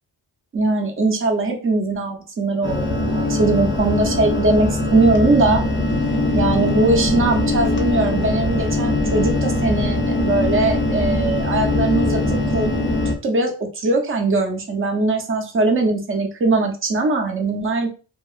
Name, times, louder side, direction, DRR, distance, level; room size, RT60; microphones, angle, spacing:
voice 1, 0.5-5.6 6.3-12.7 13.2-17.9, right 2 dB, 30° right, 2 dB, 0.5 m, -20 dB
sound 1, 2.6-13.2, left 2 dB, 30° left, 0.4 m, -21 dB
2.7 x 2.3 x 2.3 m, 0.36 s
wide cardioid pair, 140°, 45 cm